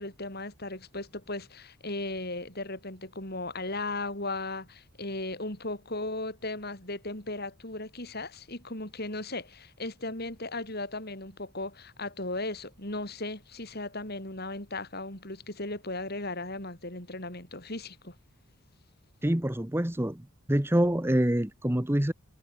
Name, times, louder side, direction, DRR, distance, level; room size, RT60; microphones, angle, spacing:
voice 1, 0.0-18.1, left 2 dB, 45° left, 5.5 m, -36 dB
voice 2, 19.2-20.2 20.5-22.1, right 1 dB, 10° right, 1.0 m, -26 dB
head